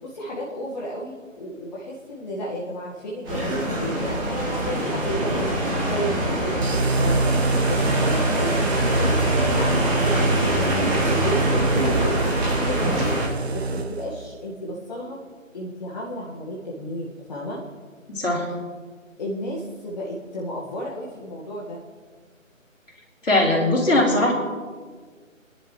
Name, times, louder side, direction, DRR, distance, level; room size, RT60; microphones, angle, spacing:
voice 1, 0.0-5.5 5.9-7.3 7.6-8.7 9.0-13.1 13.5-15.2 15.5-17.6 19.2-21.8, equal, 30° left, -4 dB, 1.8 m, -32 dB
sound 1, 3.2-13.3, right 1 dB, 10° right, 2.6 m, -24 dB
sound 2, 6.6-14.2, right 3 dB, 50° right, 0.9 m, -25 dB
voice 2, 18.1-18.5 23.2-24.3, left 1 dB, 65° left, -2 dB, 4.6 m, -20 dB
27.0 x 11.0 x 3.2 m, 1.5 s
figure-of-eight pair, 150°, 40 cm